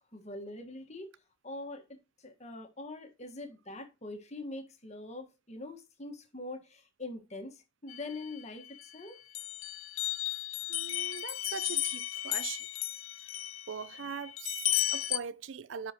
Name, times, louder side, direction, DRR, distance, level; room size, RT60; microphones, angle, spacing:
voice 1, 0.1-1.1 1.4-9.2, left 2 dB, 35° left, 1.6 m, -43 dB
sound 1, 7.9-8.9 9.3-15.2, left 15 dB, 85° left, 0.6 m, -34 dB
voice 2, 10.7-12.7 13.7-15.9, right 7 dB, 65° right, 0.5 m, -41 dB
11.0 x 5.0 x 3.0 m
head